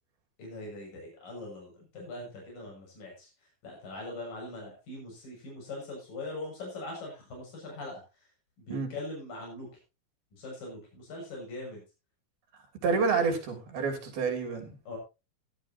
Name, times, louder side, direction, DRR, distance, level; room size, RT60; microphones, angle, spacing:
voice 1, 0.4-3.3 3.6-8.0 8.6-9.7 10.4-11.8 14.9-15.0, left 2 dB, 60° left, 8.5 m, -41 dB
voice 2, 12.8-14.8, right 4 dB, 75° right, 5.0 m, -28 dB
16.5 x 12.0 x 2.9 m
omnidirectional pair, 4.4 m